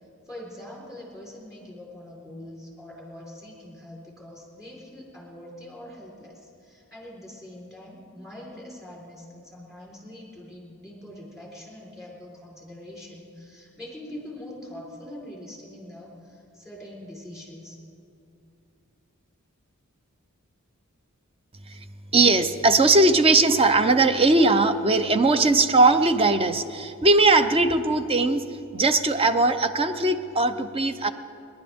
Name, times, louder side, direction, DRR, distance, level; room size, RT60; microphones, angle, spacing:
voice 1, 0.3-17.8, left 1 dB, ahead, -3 dB, 4.1 m, -43 dB
voice 2, 22.1-28.4 28.7-31.1, right 2 dB, 25° right, 10 dB, 0.6 m, -19 dB
27.5 x 11.0 x 3.6 m, 2.6 s
head